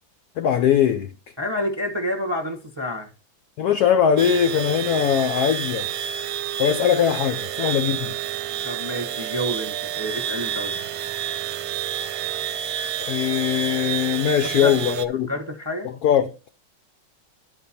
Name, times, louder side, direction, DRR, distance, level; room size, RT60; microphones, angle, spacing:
voice 1, 0.4-1.1 3.6-5.9 6.6-8.2 13.0-15.3 15.8-16.4, left 9 dB, 80° left, 0.8 m, -21 dB
voice 2, 1.4-3.1 6.9-7.0 8.6-10.9 14.4-14.8 15.3-15.9, equal, 20° right, 0.7 m, -29 dB
sound 1, 4.2-15.1, right 9 dB, 85° right, 1.4 m, -29 dB
11.5 x 4.5 x 4.2 m
omnidirectional pair, 2.2 m